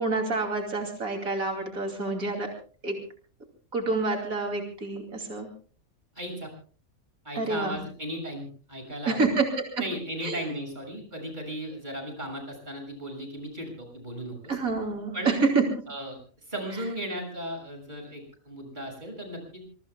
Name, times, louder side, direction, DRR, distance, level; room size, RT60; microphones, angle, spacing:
voice 1, 0.0-2.5 2.8-3.0 3.7-5.5 7.3-7.8 9.0-9.6 10.2-10.4 14.5-15.6, right 3 dB, 90° right, 3 dB, 3.3 m, -27 dB
voice 2, 6.1-6.5 7.2-9.3 9.8-14.6 15.1-15.3 15.9-16.2 16.5-19.6, equal, 35° right, 2 dB, 6.8 m, -36 dB
26.0 x 22.5 x 2.3 m, 0.41 s
omnidirectional pair, 1.4 m